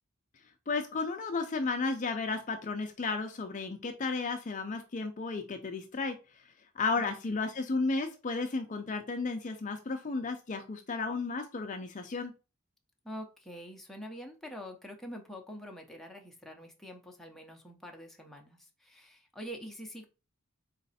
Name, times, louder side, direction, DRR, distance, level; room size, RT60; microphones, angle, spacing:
voice 1, 0.7-6.4 6.8-12.3, left 3 dB, 35° left, 5 dB, 0.5 m, -33 dB
voice 2, 7.0-7.4 13.0-20.1, equal, ahead, 1 dB, 0.7 m, -45 dB
4.0 x 3.2 x 4.1 m, 0.32 s
head